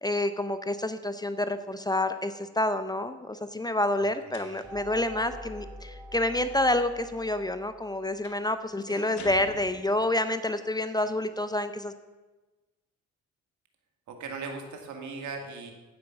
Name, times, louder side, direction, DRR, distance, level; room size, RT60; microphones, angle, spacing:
voice 1, 0.0-11.9, left 1 dB, 15° left, 10 dB, 0.6 m, -28 dB
sound 1, 4.3-4.9 8.2-8.5 9.2-10.2, left 6 dB, 70° left, 1.7 m, -46 dB
sound 2, 4.6-8.4, right 1 dB, 10° right, 1.7 m, -46 dB
voice 2, 8.9-9.3 14.1-15.7, right 4 dB, 70° right, 3 dB, 2.1 m, -39 dB
15.5 x 5.2 x 5.9 m, 1.2 s
cardioid pair, 90°, 30 cm